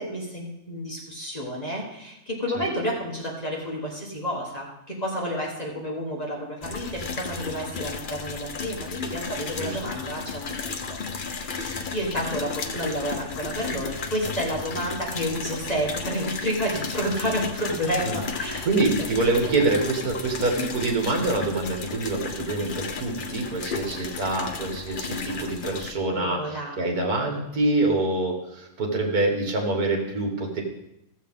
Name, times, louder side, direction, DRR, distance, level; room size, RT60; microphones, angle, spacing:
voice 1, 0.0-11.0 11.3-18.7 19.2-19.6 20.6-20.7 26.1-26.7, equal, 25° left, -3 dB, 1.5 m, -30 dB
sound 1, 6.6-25.9, left 5 dB, 50° left, 0.6 m, -34 dB
voice 2, 18.6-30.6, right 2 dB, 65° right, 1 dB, 2.1 m, -26 dB
14.5 x 7.2 x 3.7 m, 0.84 s
omnidirectional pair, 1.7 m